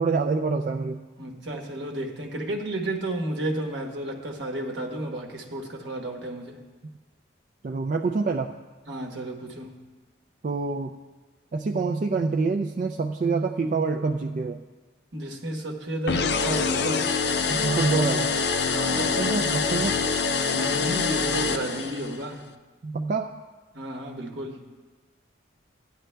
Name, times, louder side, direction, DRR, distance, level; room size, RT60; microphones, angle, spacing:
voice 1, 0.0-1.0 7.6-8.5 10.4-10.9 11.5-14.6 17.5-18.4 19.0-20.0 22.8-23.4, right 4 dB, 40° right, 3 dB, 0.3 m, -26 dB
voice 2, 1.2-6.6 8.9-9.8 15.1-17.1 17.6-18.1 18.7-19.2 20.5-22.5 23.7-24.6, right 1 dB, 70° right, 2 dB, 1.2 m, -32 dB
sound 1, 16.1-22.3, left 5 dB, 55° left, 0.4 m, -25 dB
16.0 x 10.0 x 2.2 m, 1.3 s
head